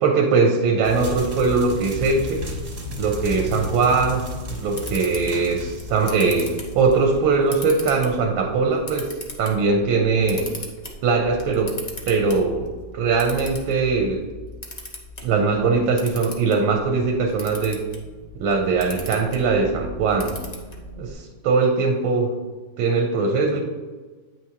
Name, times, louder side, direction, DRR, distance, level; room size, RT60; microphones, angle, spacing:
voice 1, 0.0-2.5 3.0-9.1 9.4-10.5 11.0-11.7 12.1-14.2 15.2-17.8 18.3-20.4 21.0-22.3 22.8-23.6, right 4 dB, 90° right, 2 dB, 1.6 m, -21 dB
sound 1, 0.8-7.6, left 1 dB, 25° right, 0.9 m, -33 dB
Camera, 4.4-21.1, left 2 dB, 40° left, 0.6 m, -39 dB
8.8 x 6.1 x 2.8 m, 1.3 s
omnidirectional pair, 2.2 m